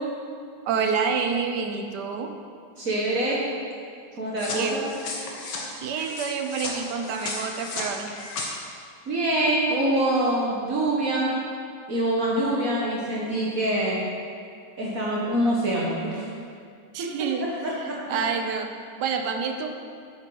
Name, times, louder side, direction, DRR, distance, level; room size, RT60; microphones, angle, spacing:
voice 1, 0.6-2.3 4.5-4.9 5.8-8.1 16.9-19.7, right 6 dB, 75° right, 5 dB, 1.3 m, -28 dB
voice 2, 2.8-3.4 4.2-4.9 9.1-11.4 11.9-14.1 14.8-16.3 17.0-17.1 17.6-18.2, right 1 dB, 55° right, -5 dB, 1.6 m, -25 dB
sound 1, 4.4-8.5, left 3 dB, 85° left, 1.8 m, -34 dB
8.5 x 8.0 x 4.6 m, 2.3 s
omnidirectional pair, 1.8 m